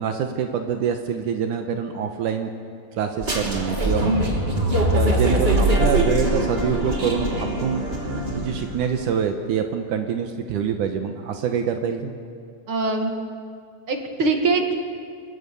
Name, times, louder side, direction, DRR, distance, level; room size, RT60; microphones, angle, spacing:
voice 1, 0.0-2.5 3.0-4.2 4.9-7.8 8.3-12.1, right 7 dB, 80° right, 5 dB, 2.6 m, -25 dB
sound 1, 3.2-8.8, right 1 dB, 20° right, 2.6 m, -22 dB
voice 2, 12.7-13.1 13.9-14.7, right 3 dB, 45° right, 3 dB, 2.7 m, -22 dB
28.5 x 23.5 x 7.0 m, 2.3 s
omnidirectional pair, 3.7 m